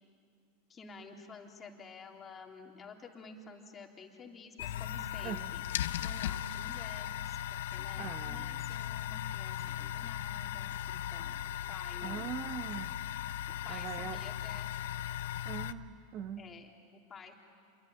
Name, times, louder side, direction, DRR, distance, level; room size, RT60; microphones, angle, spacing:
voice 1, 0.7-5.6 6.0-7.4 7.7-11.4 11.7-12.3 13.5-14.7 16.4-17.3, left 4 dB, 25° left, 2 dB, 3.4 m, -51 dB
sound 1, 4.6-15.7, left 11 dB, 75° left, 0.8 m, -38 dB
voice 2, 8.0-8.7 12.0-13.0 13.7-14.2 15.4-16.4, right 9 dB, 45° right, 8 dB, 1.4 m, -41 dB
28.0 x 22.5 x 9.3 m, 2.3 s
hypercardioid pair, 115°, 0 cm